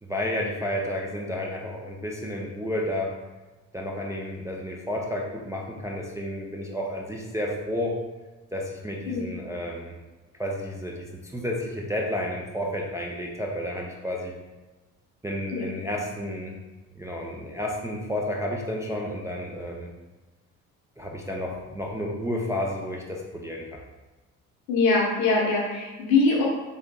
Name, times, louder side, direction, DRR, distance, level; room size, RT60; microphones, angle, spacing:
voice 1, 0.0-3.2 3.7-8.0 8.5-9.9 10.4-14.3 15.2-16.6 17.0-19.9 21.0-23.8, left 1 dB, 10° right, -2 dB, 0.3 m, -31 dB
voice 2, 24.7-26.4, left 3 dB, 75° left, -3 dB, 0.9 m, -22 dB
3.5 x 2.6 x 2.2 m, 1.2 s
hypercardioid pair, 45°, 43 cm